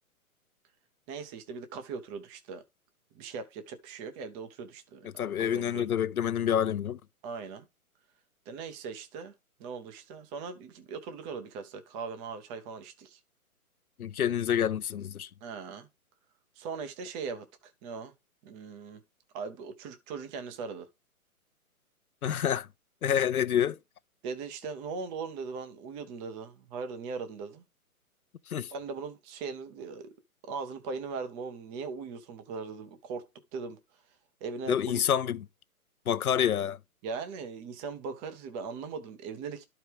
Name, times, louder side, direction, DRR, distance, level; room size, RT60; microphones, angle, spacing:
voice 1, 1.1-2.6 3.1-5.9 7.2-7.6 8.5-9.3 9.6-13.2 15.4-15.9 16.6-18.1 18.4-19.0 19.3-20.9 24.2-27.6 28.7-30.1 30.5-33.3 33.5-33.8 34.4-35.0 37.0-39.6, right 5 dB, 10° right, 0.5 m, -39 dB
voice 2, 5.2-7.0 14.0-15.3 22.2-22.7 23.0-23.8 28.5-28.7 34.7-35.4 36.1-36.8, left 9 dB, 75° left, 0.8 m, -27 dB
11.5 x 4.7 x 3.4 m
hypercardioid pair, 135°, 44 cm